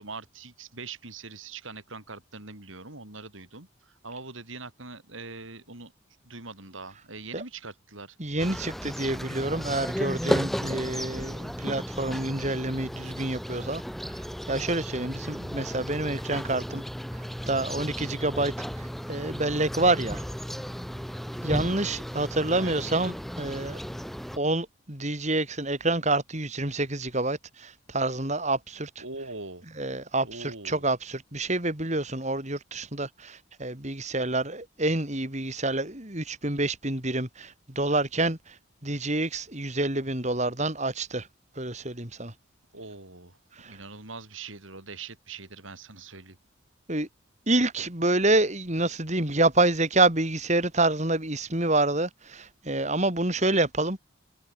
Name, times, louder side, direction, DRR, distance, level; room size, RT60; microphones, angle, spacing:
voice 1, 0.0-5.9 6.2-8.2 22.5-22.7 29.0-29.7 30.2-30.8 42.7-43.4 43.6-46.4, right 3 dB, 75° right, 5.5 m, -42 dB
voice 2, 8.2-13.8 14.1-14.2 14.5-16.8 17.5-20.2 21.4-23.8 24.4-29.0 29.8-38.6 38.8-41.3 41.6-42.3 43.6-43.8 46.9-47.1 47.5-54.0, right 2 dB, 35° right, 3.8 m, -27 dB
sound 1, 8.4-24.4, equal, ahead, 2.3 m, -34 dB
head